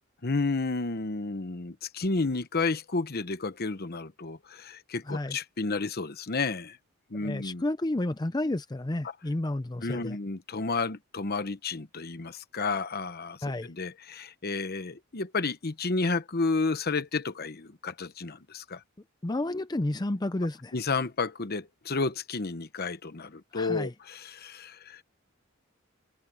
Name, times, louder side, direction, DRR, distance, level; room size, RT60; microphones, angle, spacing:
voice 1, 0.2-6.8 7.1-7.6 9.8-18.8 20.7-25.0, left 3 dB, 50° left, 1.0 m, -31 dB
voice 2, 5.1-5.4 7.2-10.2 13.4-13.7 19.2-20.7 23.5-23.9, left 1 dB, 20° left, 0.6 m, -31 dB
head